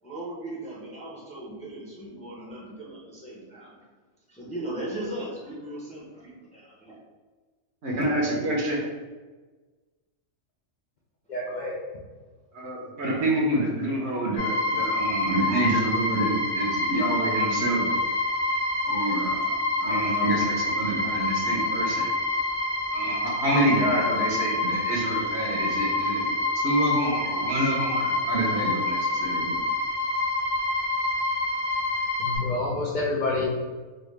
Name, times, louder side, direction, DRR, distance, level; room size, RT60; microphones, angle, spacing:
voice 1, 0.0-3.8 4.3-7.0, right 1 dB, 10° left, -6 dB, 0.5 m, -38 dB
voice 2, 7.8-8.8 12.5-17.8 18.8-22.1 22.9-26.3 26.6-29.5, right 1 dB, 60° right, -3 dB, 1.0 m, -27 dB
voice 3, 11.3-11.8 32.2-33.4, left 2 dB, 65° left, -3 dB, 0.4 m, -28 dB
sound 1, 14.4-32.4, left 2 dB, 80° left, 1.6 m, -27 dB
3.8 x 2.1 x 3.2 m, 1.3 s
omnidirectional pair, 1.4 m